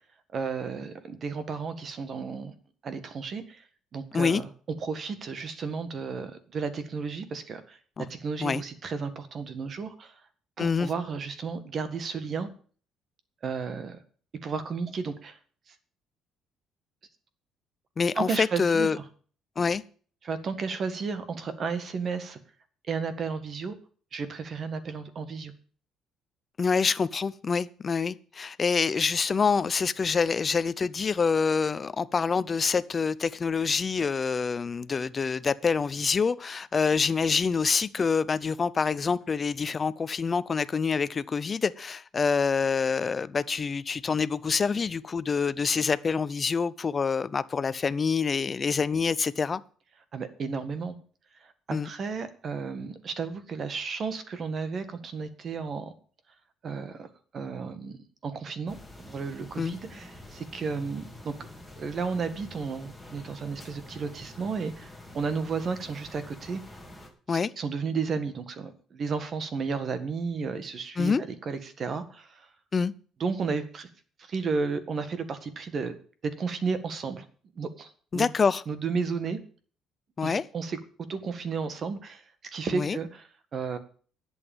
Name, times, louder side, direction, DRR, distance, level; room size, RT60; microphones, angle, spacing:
voice 1, 0.3-2.5 2.8-3.6 3.9-4.5 4.8-7.8 8.1-10.2 10.6-12.5 13.4-14.0 14.4-15.4 15.7-15.8 18.1-18.9 20.2-22.4 22.9-23.7 24.1-25.5 50.1-50.9 51.4-51.5 51.8-55.9 56.6-57.1 57.3-61.3 61.8-66.6 67.3-71.1 71.4-72.5 73.2-73.9 74.2-76.0 76.4-77.2 77.5-78.3 78.7-79.4 80.2-80.8 81.1-82.2 82.5-83.8, right 5 dB, 40° right, 1.8 m, -33 dB
voice 2, 10.6-10.9 18.0-19.0 19.6-19.8 26.6-49.6 51.7-51.9 59.6-59.8 67.3-67.5 71.0-71.2 72.7-72.9 78.1-78.6 80.2-80.4 82.7-83.0, left 5 dB, 30° left, 0.6 m, -26 dB
sound 1, 58.7-67.1, left 1 dB, ahead, 3.0 m, -47 dB
11.0 x 8.2 x 7.3 m
cardioid pair, 125°, 0 cm